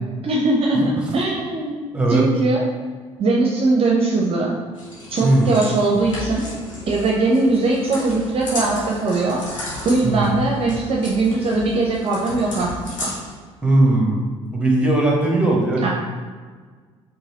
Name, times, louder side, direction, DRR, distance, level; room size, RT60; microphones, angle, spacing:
voice 1, 0.2-1.8 2.1-2.6 3.2-4.5 5.1-6.4 6.9-9.4 9.8-13.1 15.8-15.9, right 3 dB, 35° right, -2 dB, 0.6 m, -20 dB
voice 2, 1.9-2.2 5.2-5.5 10.0-10.3 13.6-14.2 14.5-15.9, right 2 dB, 5° right, -1 dB, 1.0 m, -18 dB
sound 1, 4.8-13.4, left 1 dB, 80° left, 0.9 m, -34 dB
4.7 x 2.8 x 2.9 m, 1.5 s
figure-of-eight pair, 55°, 16 cm